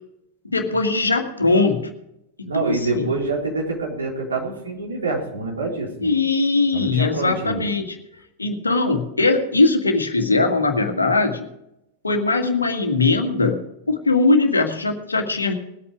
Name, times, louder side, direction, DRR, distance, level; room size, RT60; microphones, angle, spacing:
voice 1, 0.4-1.9 2.5-3.1 6.0-8.0 8.4-11.5 12.0-13.6 13.9-15.5, left 3 dB, 80° left, 5 dB, 1.9 m, -20 dB
voice 2, 2.5-6.1 6.7-7.6, right 3 dB, 75° right, -1 dB, 4.2 m, -26 dB
20.5 x 8.7 x 5.0 m, 0.82 s
figure-of-eight pair, 90°, 0 cm